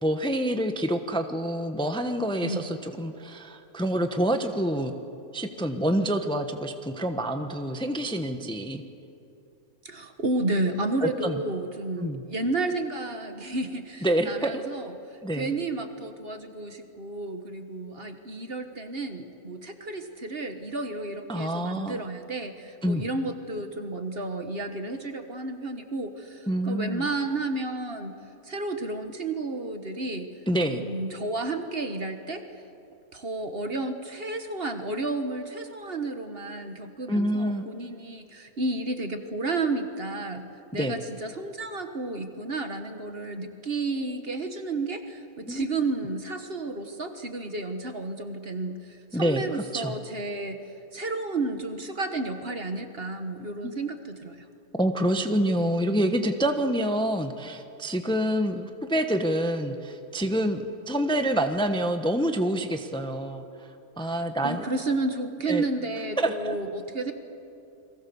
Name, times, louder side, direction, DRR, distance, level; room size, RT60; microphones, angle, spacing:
voice 1, 0.0-4.9 5.3-8.8 11.0-11.4 12.0-12.2 14.0-14.6 15.2-15.5 21.3-22.0 22.8-23.0 26.5-27.1 30.5-30.8 37.1-37.7 40.7-41.0 45.5-45.6 49.1-49.9 54.8-63.4 64.0-64.6 65.5-65.6 66.2-66.6, right 1 dB, 5° left, 6 dB, 1.1 m, -27 dB
voice 2, 9.8-28.1 28.4-30.3 30.7-32.4 33.1-50.6 50.9-54.4 64.0-64.1 64.4-67.1, right 2 dB, 40° right, 7 dB, 1.6 m, -32 dB
30.0 x 22.5 x 7.1 m, 2.7 s
omnidirectional pair, 1.6 m